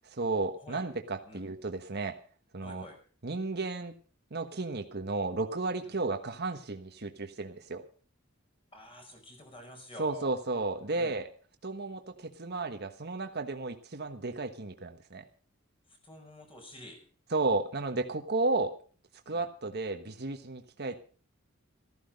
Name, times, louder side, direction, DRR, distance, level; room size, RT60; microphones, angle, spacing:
voice 1, 0.2-2.2 2.5-2.8 3.2-3.9 4.3-7.8 10.0-11.3 11.6-15.2 17.3-18.7 19.3-21.0, right 3 dB, 55° right, 6 dB, 1.3 m, -33 dB
voice 2, 2.6-3.0 5.8-6.0 8.7-10.4 10.9-11.2 15.9-17.0 19.3-19.5, left 1 dB, 25° left, 3 dB, 5.3 m, -49 dB
14.5 x 14.0 x 5.3 m, 0.41 s
head